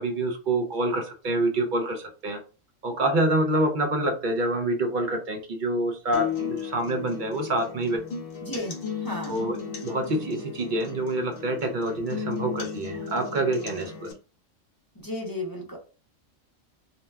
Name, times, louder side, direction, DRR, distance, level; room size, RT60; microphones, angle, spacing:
voice 1, 0.0-2.4 2.8-8.0 9.3-14.1, right 1 dB, 60° right, 4 dB, 0.5 m, -27 dB
sound 1, 6.1-14.1, left 7 dB, 55° left, 0.8 m, -35 dB
voice 2, 8.4-9.5 14.9-15.8, left 1 dB, 25° left, -1 dB, 0.5 m, -34 dB
2.8 x 2.1 x 3.3 m, 0.35 s
omnidirectional pair, 1.3 m